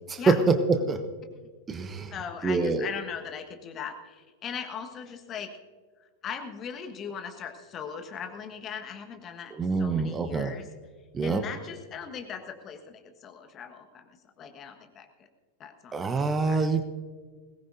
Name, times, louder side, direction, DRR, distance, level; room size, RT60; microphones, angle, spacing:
voice 1, 0.1-1.0 1.7-2.1 2.4-2.9 9.5-10.5 11.1-11.4 15.9-16.8, right 4 dB, 20° right, 8 dB, 0.9 m, -25 dB
voice 2, 2.1-5.5 6.2-10.7 11.2-15.3 15.6-16.1 16.5-16.7, left 7 dB, 30° left, 6 dB, 1.4 m, -39 dB
21.0 x 18.0 x 2.6 m, 1.6 s
figure-of-eight pair, 90°, 0 cm